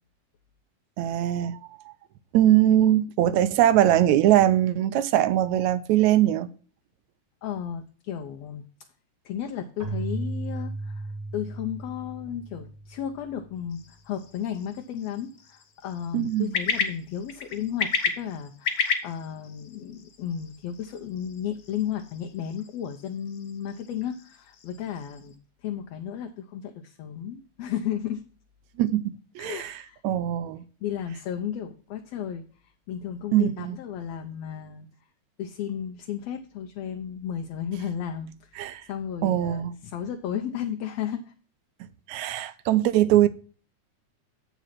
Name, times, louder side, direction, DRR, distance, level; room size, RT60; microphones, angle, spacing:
voice 1, 1.0-1.9 2.3-6.5 16.1-16.5 28.8-29.8 30.0-30.6 33.3-33.8 38.6-38.8 39.2-39.7 42.1-43.3, right 12 dB, 80° right, 1.9 m, -22 dB
voice 2, 7.4-8.6 9.3-28.2 29.4-30.0 30.8-34.9 35.4-41.3, left 9 dB, 70° left, 1.8 m, -34 dB
Keyboard (musical), 9.8-13.3, right 3 dB, 10° right, 1.3 m, -35 dB
sound 1, 13.7-25.4, left 5 dB, 90° left, 0.8 m, -34 dB
8.4 x 5.1 x 5.7 m
omnidirectional pair, 3.4 m